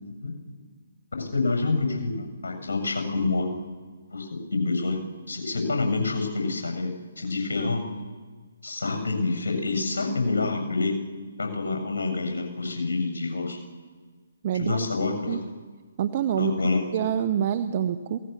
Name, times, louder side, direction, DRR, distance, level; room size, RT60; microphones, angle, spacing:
voice 1, 0.2-0.6 1.2-3.5 4.1-5.0 5.3-7.8 8.6-11.0 11.4-13.6 14.5-15.4 16.4-17.0, left 3 dB, 70° left, 5 dB, 7.2 m, -27 dB
voice 2, 14.4-14.8 15.3-15.4 16.0-16.5 16.9-18.2, right 9 dB, 40° right, 11 dB, 1.1 m, -26 dB
28.5 x 18.5 x 7.0 m, 1.5 s
figure-of-eight pair, 145°, 0 cm